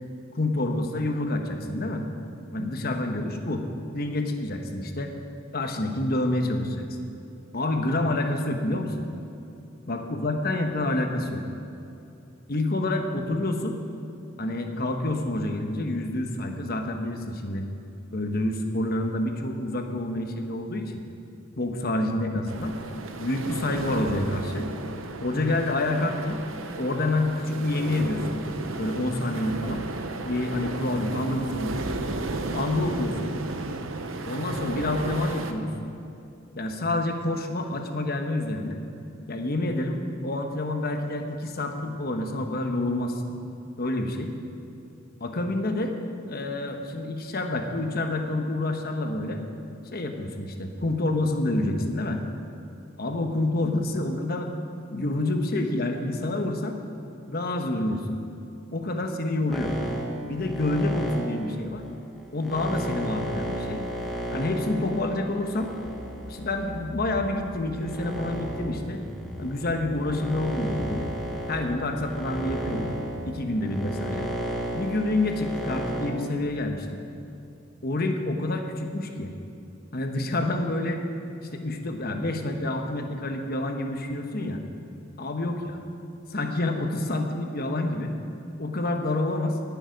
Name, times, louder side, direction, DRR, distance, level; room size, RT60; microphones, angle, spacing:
voice 1, 0.3-2.0 2.5-3.6 3.9-5.1 5.5-6.8 7.5-9.0 9.9-11.4 12.5-13.7 14.4-17.6 18.1-21.0 21.6-22.7 23.2-24.7 25.2-26.4 26.8-28.4 28.7-29.8 30.2-32.0 32.4-33.3 34.3-35.7 36.6-38.8 39.3-43.4 43.8-44.3 45.2-46.0 46.3-49.4 49.9-52.2 53.0-54.5 54.9-56.8 57.3-58.0 58.7-59.7 60.2-61.8 62.3-63.8 64.3-65.7 66.2-69.0 69.4-71.1 71.5-73.0 73.2-74.3 74.7-77.0 77.8-79.3 79.9-81.0 81.5-84.6 85.2-85.8 86.3-88.1 88.6-89.6, left 2 dB, 50° left, 4 dB, 1.1 m, -28 dB
sound 1, 22.5-35.5, right 3 dB, 85° right, 0.8 m, -34 dB
sound 2, 59.5-66.9 67.5-76.1, right 1 dB, ahead, 1.4 m, -33 dB
sound 3, 65.6-73.3, equal, 20° left, 1.5 m, -42 dB
19.5 x 7.1 x 5.2 m, 2.7 s
head